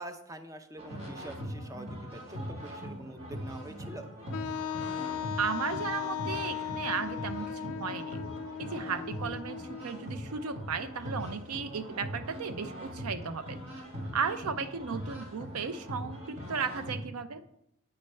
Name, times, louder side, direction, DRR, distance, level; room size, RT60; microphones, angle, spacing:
voice 1, 0.0-4.1, right 1 dB, 15° right, 8 dB, 0.4 m, -45 dB
sound 1, 0.8-17.0, equal, 55° right, 2.1 m, -41 dB
Wind instrument woodwind instrument, 4.3-10.1, left 9 dB, 75° left, 0.3 m, -37 dB
voice 2, 5.4-8.2 8.6-13.6 14.1-17.4, right 6 dB, 80° right, 12 dB, 0.5 m, -35 dB
8.4 x 3.2 x 5.4 m, 0.77 s
head